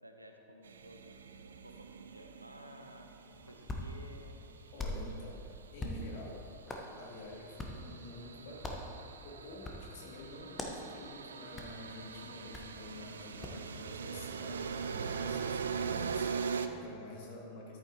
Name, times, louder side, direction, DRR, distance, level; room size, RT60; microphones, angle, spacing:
voice 1, 0.0-1.2 1.6-3.1 3.5-4.4, right 1 dB, 85° right, 5 dB, 0.9 m, -54 dB
sound 1, 0.6-5.0 6.5-16.7, right 6 dB, 70° right, 0.5 m, -41 dB
Hands, 3.3-13.7, left 1 dB, 15° left, 1.2 m, -45 dB
voice 2, 4.7-5.4 5.7-6.4 7.0-8.8 9.2-17.8, left 2 dB, 50° left, -2 dB, 2.4 m, -49 dB
13.5 x 10.5 x 3.0 m, 2.7 s
figure-of-eight pair, 90°, 0 cm